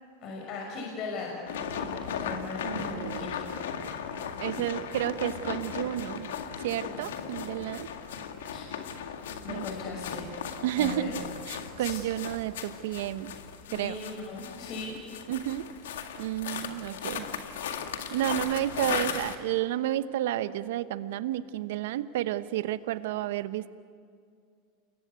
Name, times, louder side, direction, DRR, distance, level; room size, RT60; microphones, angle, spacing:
voice 1, 0.2-1.4 1.7-3.4 8.5-8.7 9.4-10.3 10.8-11.1 11.8-12.0 13.7-15.0, left 3 dB, 50° left, 0 dB, 6.2 m, -38 dB
sound 1, 1.5-19.4, left 7 dB, 80° left, 2.0 m, -37 dB
voice 2, 2.6-3.3 4.4-6.3 6.6-7.9 9.5-9.6 10.6-11.2 11.5-13.3 13.7-13.9 15.3-15.7 16.2-17.3 18.1-23.7, right 13 dB, 75° right, 13 dB, 1.0 m, -31 dB
28.5 x 22.5 x 8.2 m, 2.3 s
hypercardioid pair, 100°, 0 cm